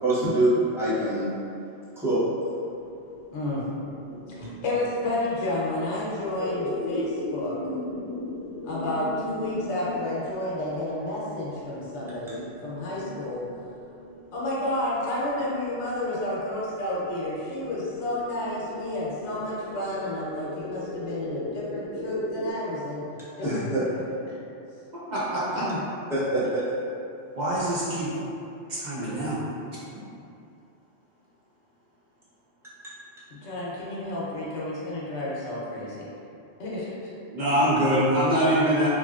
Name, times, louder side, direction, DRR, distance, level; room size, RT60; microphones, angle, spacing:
voice 1, 0.0-1.3 2.0-2.2 23.4-23.8 26.1-26.9, right 1 dB, 5° right, -11 dB, 0.4 m, -24 dB
sound 1, 2.7-22.5, left 1 dB, 65° right, 1.1 m, -38 dB
voice 2, 3.3-3.6 4.3-7.6 8.6-13.4 14.3-23.0 23.4-23.6 25.5-25.8 33.4-36.1 36.6-37.1, left 1 dB, 70° left, -7 dB, 0.9 m, -31 dB
voice 3, 25.1-25.6 27.4-28.1 28.7-29.4 37.3-38.9, right 1 dB, 50° right, -9 dB, 0.6 m, -24 dB
3.0 x 2.4 x 2.3 m, 2.6 s
omnidirectional pair, 1.2 m